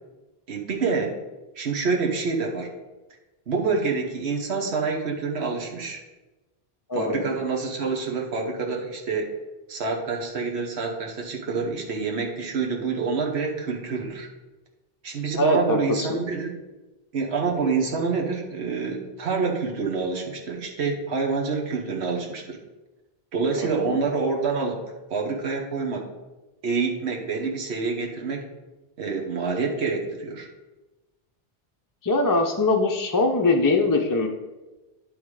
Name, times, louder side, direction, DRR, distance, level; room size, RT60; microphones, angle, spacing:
voice 1, 0.5-1.2 1.6-2.7 3.5-6.0 6.9-9.3 9.7-14.3 15.0-16.5 17.1-22.6 23.3-24.8 25.1-26.1 26.6-28.4 29.0-30.5, right 4 dB, 85° right, 0 dB, 1.2 m, -27 dB
voice 2, 6.9-7.3 15.4-16.1 23.6-24.0 32.0-34.3, left 2 dB, 25° left, 2 dB, 0.5 m, -22 dB
10.0 x 3.5 x 4.7 m, 1.1 s
omnidirectional pair, 1.1 m